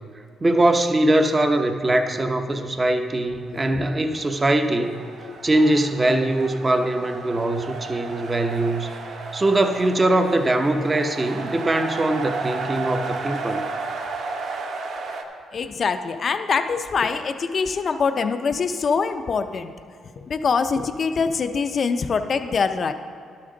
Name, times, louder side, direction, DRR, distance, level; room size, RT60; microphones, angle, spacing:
voice 1, 0.4-5.0 5.4-8.9 9.3-13.7, right 1 dB, 25° right, 6 dB, 0.8 m, -21 dB
sound 1, 3.7-15.2, right 3 dB, 70° right, 0.9 m, -33 dB
voice 2, 5.2-5.5 15.5-19.7 20.2-22.9, left 5 dB, 45° left, 8 dB, 0.5 m, -24 dB
12.0 x 8.7 x 3.9 m, 2.3 s
cardioid pair, 90°, 0 cm